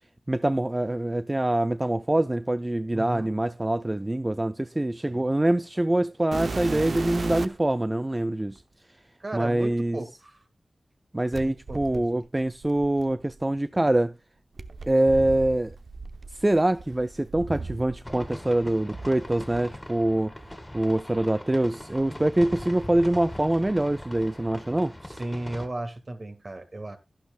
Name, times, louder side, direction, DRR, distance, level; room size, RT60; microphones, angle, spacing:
voice 1, 0.3-8.6 9.3-10.0 11.1-14.1 14.9-15.8 16.3-20.4 20.7-24.9, right 1 dB, 25° right, 0.4 m, -24 dB
voice 2, 2.9-3.3 5.0-5.3 9.2-10.4 11.4-12.1 25.1-27.0, right 2 dB, 45° right, 2.0 m, -36 dB
sound 1, 6.3-7.7 8.6-8.7 11.3-13.4 14.6-18.3 18.6-19.6 20.4-20.5 21.1-21.2 21.9-23.0 23.3-23.8 25.1-25.2, right 3 dB, 70° right, 0.8 m, -36 dB
sound 2, 18.0-25.7, left 1 dB, 15° left, 2.1 m, -41 dB
11.5 x 11.0 x 2.4 m
cardioid pair, 45°, 0 cm